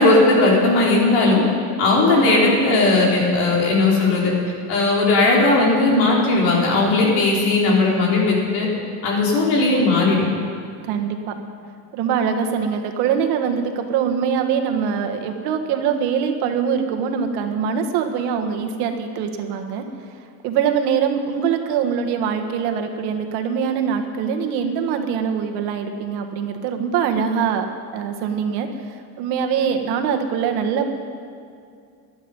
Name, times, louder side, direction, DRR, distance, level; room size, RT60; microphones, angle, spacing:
voice 1, 0.0-1.4 1.8-4.3 4.7-8.7 9.0-10.2, left 2 dB, 85° left, -3 dB, 4.5 m, -17 dB
voice 2, 2.1-2.6 10.8-11.3 11.9-19.8 20.4-27.7 27.9-28.7 29.2-30.9, right 7 dB, 65° right, 5 dB, 1.6 m, -23 dB
17.5 x 11.5 x 5.4 m, 2.4 s
cardioid pair, 160°, 42 cm